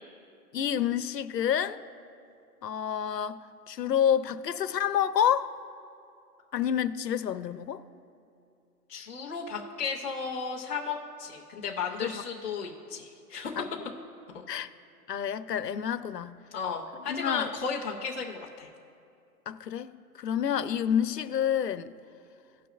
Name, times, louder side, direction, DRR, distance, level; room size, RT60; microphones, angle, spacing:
voice 1, 0.5-1.8 2.6-3.4 3.7-5.5 6.5-7.8 12.0-12.2 13.6-13.7 14.5-14.7 15.1-16.4 17.1-17.5 19.5-21.9, left 9 dB, 80° left, 0.9 m, -28 dB
voice 2, 8.9-13.5 16.5-18.7, left 5 dB, 10° left, 0.5 m, -34 dB
18.0 x 6.0 x 2.4 m
hypercardioid pair, 155°, 48 cm